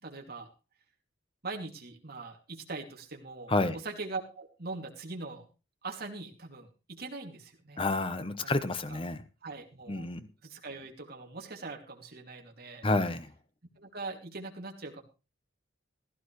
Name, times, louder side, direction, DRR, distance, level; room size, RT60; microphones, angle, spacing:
voice 1, 0.0-0.5 1.4-5.5 5.8-7.8 8.9-9.0 9.4-10.1 10.4-12.9 13.8-15.0, right 3 dB, 55° right, 2 dB, 2.6 m, -41 dB
voice 2, 7.8-9.2 9.9-10.3 12.8-13.3, left 2 dB, 30° left, 11 dB, 0.9 m, -29 dB
16.0 x 13.5 x 3.2 m, 0.31 s
head